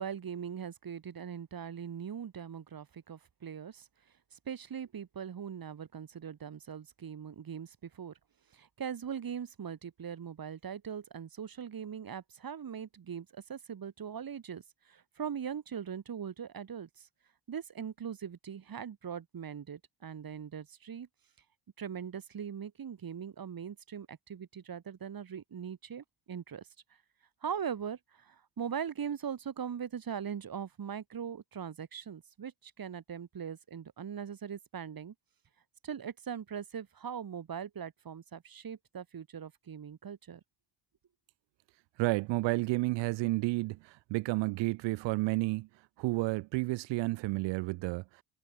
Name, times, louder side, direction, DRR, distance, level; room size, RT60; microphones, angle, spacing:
voice 1, 0.0-3.9 4.3-8.1 8.5-17.1 17.5-21.1 21.8-26.7 27.4-35.1 35.8-40.4, right 8 dB, 55° right, 6.2 m, -41 dB
voice 2, 42.0-45.7 46.0-48.2, right 21 dB, 90° right, 1.2 m, -31 dB
supercardioid pair, 65°, 42 cm